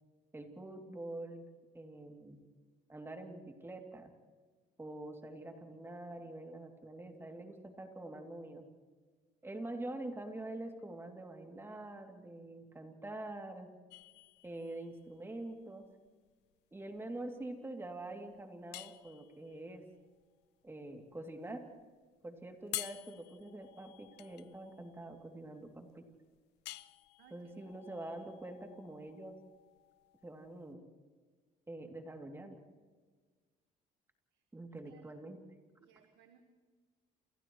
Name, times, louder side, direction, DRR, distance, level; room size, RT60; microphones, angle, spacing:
voice 1, 0.3-1.4 1.7-2.4 2.9-4.1 4.8-8.7 9.4-13.7 14.4-15.8 16.7-19.8 20.6-21.6 22.2-26.0 27.3-29.4 30.2-30.8 31.7-32.6 34.5-35.4, right 2 dB, 15° right, 3 dB, 2.8 m, -45 dB
sound 1, 13.9-30.7, left 18 dB, 85° left, 0.6 m, -51 dB
voice 2, 27.2-27.7 34.3-34.4 34.9-35.0 35.8-36.4, right 9 dB, 85° right, 5 dB, 1.6 m, -63 dB
29.0 x 28.5 x 3.2 m, 1.4 s
cardioid pair, 110°, 17 cm